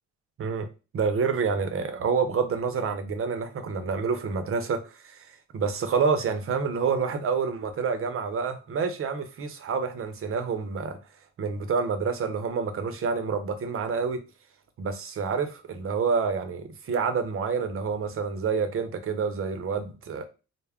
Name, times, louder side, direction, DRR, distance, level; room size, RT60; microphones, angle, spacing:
voice 1, 0.9-5.3 5.5-11.0 11.4-14.2 14.8-20.2, right 5 dB, 45° right, 0.6 m, -28 dB
2.3 x 2.0 x 3.4 m
cardioid pair, 90°, 30 cm